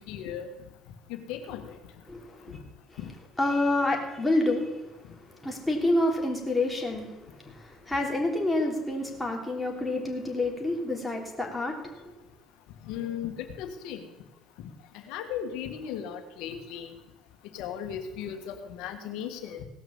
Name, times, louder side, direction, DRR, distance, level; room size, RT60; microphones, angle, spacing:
voice 1, 0.1-0.5 1.1-1.7 3.0-3.1 12.8-14.0 14.9-16.9 17.5-19.6, left 9 dB, 80° left, 7 dB, 1.7 m, -36 dB
voice 2, 2.1-2.6 3.4-12.1, left 2 dB, 10° left, 0 dB, 3.3 m, -28 dB
17.5 x 6.1 x 7.2 m, 1.0 s
supercardioid pair, 95°, 0 cm